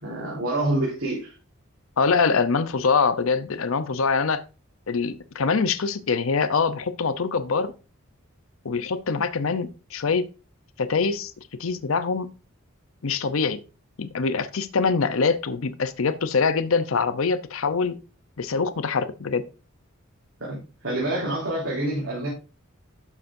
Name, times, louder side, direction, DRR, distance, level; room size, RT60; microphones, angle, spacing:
voice 1, 0.0-1.4 20.4-22.3, right 1 dB, 65° right, 3.9 m, -27 dB
voice 2, 2.0-4.4 4.9-7.7 8.6-10.3 10.8-11.3 11.6-12.3 13.0-13.6 14.0-18.0 18.4-19.5, left 5 dB, 70° left, 0.7 m, -24 dB
11.5 x 7.2 x 2.6 m
head